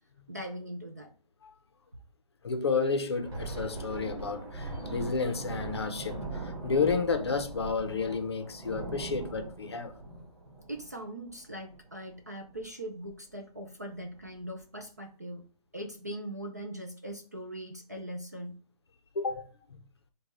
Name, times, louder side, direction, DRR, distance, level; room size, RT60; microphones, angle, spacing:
voice 1, 0.3-1.1 10.7-15.4 15.7-18.5, right 1 dB, 25° right, 0.3 m, -40 dB
voice 2, 2.4-9.9 19.1-19.4, left 4 dB, 40° left, 0.6 m, -31 dB
Thunder, 3.0-12.1 12.5-12.7 13.1-13.3 13.9-14.4, right 2 dB, 45° right, 2.4 m, -40 dB
4.9 x 2.2 x 4.2 m
hypercardioid pair, 170°, 20 cm